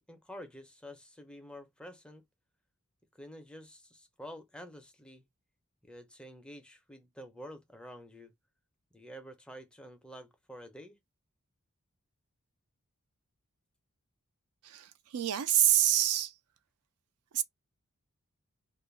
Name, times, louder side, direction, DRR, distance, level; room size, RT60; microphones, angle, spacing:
voice 1, 0.0-2.2 3.1-5.2 5.8-8.3 8.9-11.0, equal, 5° left, 0.4 m, -49 dB
voice 2, 14.6-16.3 17.3-17.4, right 12 dB, 75° right, 0.4 m, -27 dB
2.3 x 2.0 x 3.1 m
head